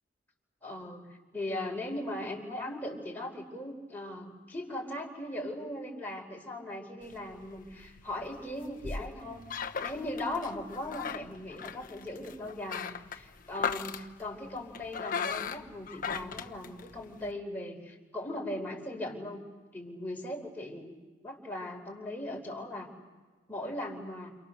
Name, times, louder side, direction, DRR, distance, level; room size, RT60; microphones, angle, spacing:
voice 1, 0.6-1.1 1.3-9.4 9.8-19.4 19.7-20.9 21.2-22.9 23.5-24.3, left 1 dB, 10° left, -1 dB, 4.6 m, -39 dB
sound 1, 7.0-17.3, left 6 dB, 45° left, 1.0 m, -39 dB
29.0 x 28.5 x 6.7 m, 1.3 s
head